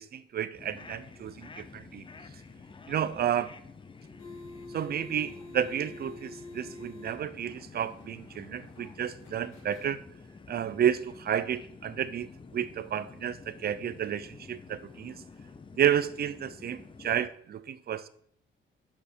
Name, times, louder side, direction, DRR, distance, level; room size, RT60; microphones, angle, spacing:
voice 1, 0.0-2.1 2.9-3.5 4.7-10.0 10.5-15.2 15.8-18.1, right 9 dB, 50° right, 0.6 m, -31 dB
sound 1, 0.5-17.3, left 4 dB, 25° left, 0.7 m, -50 dB
sound 2, 3.9-10.4, left 2 dB, 85° left, 2.5 m, -48 dB
8.4 x 5.5 x 4.5 m
cardioid pair, 90°, 20 cm